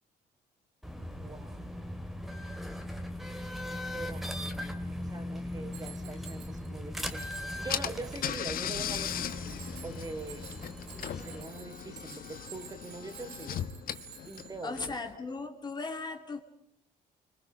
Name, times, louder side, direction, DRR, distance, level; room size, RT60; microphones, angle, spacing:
sound 1, 0.8-11.4, left 1 dB, ahead, 2.6 m, -39 dB
voice 1, 1.2-1.6 3.9-10.5 11.1-13.6 14.3-14.9, right 2 dB, 20° right, 7 dB, 3.5 m, -43 dB
Bicycle bell, 5.7-6.7 7.0-8.6 8.9-14.8, right 8 dB, 80° right, 7.2 m, -50 dB
Car / Engine, 7.2-7.3 7.7-15.1, left 10 dB, 60° left, 1.4 m, -38 dB
voice 2, 14.6-16.4, left 3 dB, 25° left, 4 dB, 2.7 m, -37 dB
29.5 x 25.5 x 5.1 m, 0.75 s
cardioid pair, 110°, 17 cm